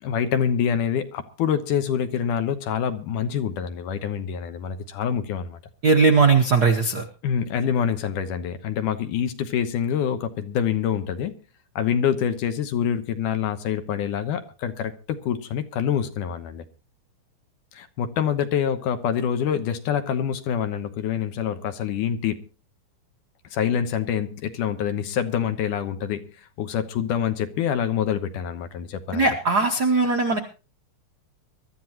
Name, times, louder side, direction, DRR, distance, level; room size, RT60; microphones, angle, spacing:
voice 1, 0.0-5.6 7.2-11.4 11.8-16.6 17.7-22.4 23.5-26.3 26.6-29.3, left 8 dB, 90° left, 2.6 m, -26 dB
voice 2, 5.8-7.0 29.1-30.4, right 4 dB, 85° right, 0.8 m, -19 dB
23.0 x 13.0 x 2.9 m
omnidirectional pair, 3.6 m